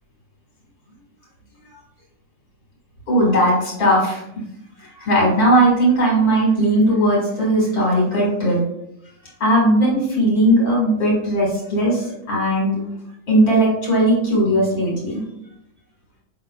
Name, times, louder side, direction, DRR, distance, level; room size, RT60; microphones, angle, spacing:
voice 1, 3.1-4.2 4.8-8.6 9.4-12.8 13.3-15.2, right 1 dB, 80° left, -5 dB, 2.3 m, -18 dB
5.4 x 3.6 x 2.3 m, 0.81 s
omnidirectional pair, 1.6 m